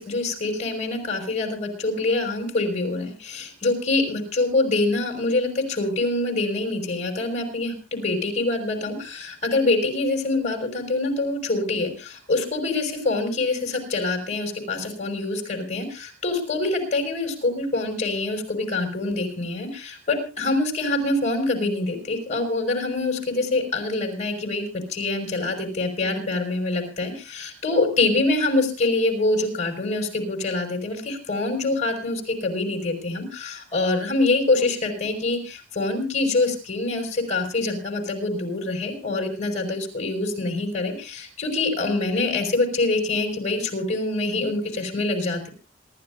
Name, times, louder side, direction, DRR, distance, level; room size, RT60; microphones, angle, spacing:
voice 1, 0.0-45.5, left 2 dB, 40° left, 4 dB, 5.7 m, -25 dB
27.0 x 13.5 x 2.6 m, 0.32 s
head